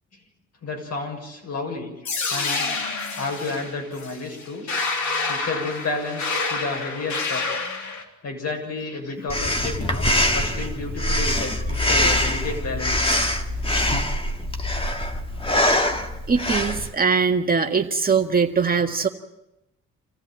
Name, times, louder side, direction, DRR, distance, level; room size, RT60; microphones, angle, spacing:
voice 1, 0.6-2.0 2.3-2.9 3.2-4.7 5.3-7.5 8.2-13.1, left 3 dB, 55° left, 3 dB, 6.9 m, -31 dB
sound 1, 2.0-8.0, left 3 dB, 70° left, 3.6 m, -28 dB
Breathing, 9.3-16.9, left 1 dB, 20° left, 2.1 m, -23 dB
voice 2, 16.3-19.1, right 5 dB, 30° right, 4 dB, 1.8 m, -21 dB
26.5 x 15.5 x 9.3 m, 0.88 s
cardioid pair, 90°, 30 cm